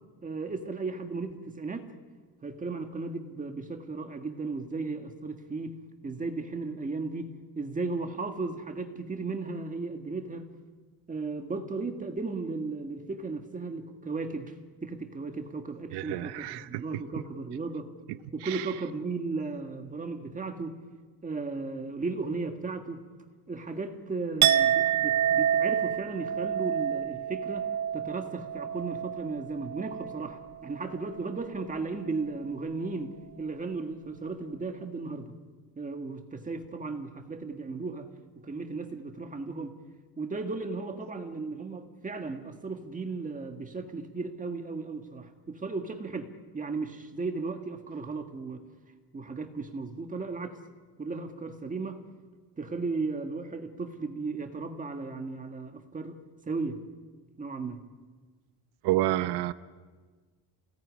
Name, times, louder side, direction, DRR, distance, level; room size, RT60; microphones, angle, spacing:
voice 1, 0.2-1.9 2.4-10.5 11.1-14.6 14.8-17.9 18.3-20.8 21.2-23.1 23.5-35.4 35.8-38.1 38.4-39.8 40.2-48.6 49.1-50.6 51.0-52.1 52.6-56.8 57.4-57.9, right 3 dB, 20° right, 5 dB, 1.8 m, -35 dB
voice 2, 15.9-16.8 18.1-18.7 58.8-59.5, right 15 dB, 80° right, 13 dB, 1.0 m, -30 dB
Chink clink, 24.4-30.3 30.6-31.0, right 10 dB, 45° right, 0.8 m, -28 dB
28.5 x 18.5 x 9.7 m, 1.4 s
cardioid pair, 145°, 39 cm